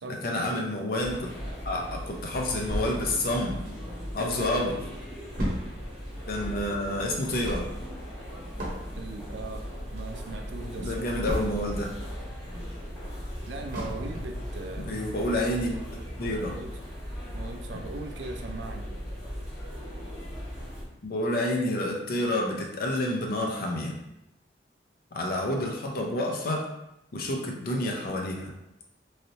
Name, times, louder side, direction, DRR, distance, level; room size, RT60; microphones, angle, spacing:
voice 1, 0.1-1.3 1.6-3.6 4.1-4.8 6.3-7.6 10.7-11.9 14.8-15.7 16.2-16.6 17.7-17.8 21.0-23.9 25.1-26.7 27.1-28.5, left 1 dB, 55° left, 1 dB, 0.6 m, -29 dB
sound 1, 1.0-20.8, equal, 20° left, 1.2 m, -38 dB
sound 2, 2.7-4.2 4.6-4.7 4.9-11.9 12.3-14.5 14.9-15.0 15.4-15.5, equal, 50° right, 0.9 m, -35 dB
voice 2, 4.2-4.6 6.5-6.6 9.0-11.1 13.5-14.9 16.5-16.7 17.3-18.9, right 3 dB, 80° right, 5 dB, 0.4 m, -39 dB
3.1 x 2.7 x 2.7 m, 0.86 s
head